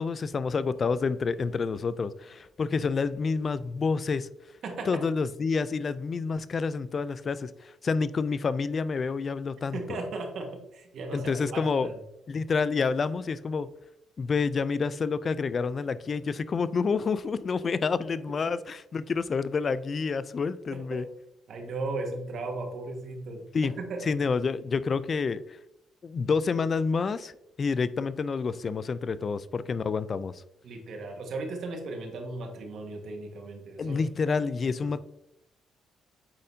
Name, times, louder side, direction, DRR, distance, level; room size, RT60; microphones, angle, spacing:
voice 1, 0.0-4.3 4.9-10.0 11.1-11.9 12.3-13.7 14.2-21.1 23.5-23.7 24.0-25.6 26.0-27.3 27.6-30.4 33.8-35.0, left 5 dB, 40° left, 16 dB, 0.3 m, -28 dB
voice 2, 9.7-12.0 20.7-21.0 21.5-23.5 23.8-24.0 30.6-34.0 34.9-35.0, right 3 dB, 65° right, 3 dB, 1.4 m, -36 dB
8.6 x 4.2 x 2.7 m, 0.83 s
cardioid pair, 90°, 0 cm